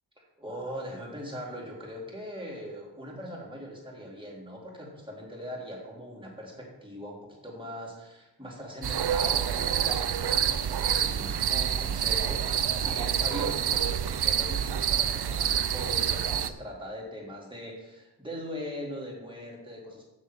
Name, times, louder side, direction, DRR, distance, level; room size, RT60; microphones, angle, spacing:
voice 1, 0.2-20.0, equal, 10° right, -3 dB, 3.4 m, -40 dB
sound 1, 8.8-16.5, right 9 dB, 65° right, 0.6 m, -27 dB
7.2 x 6.6 x 7.5 m, 1.0 s
wide cardioid pair, 95°, 43 cm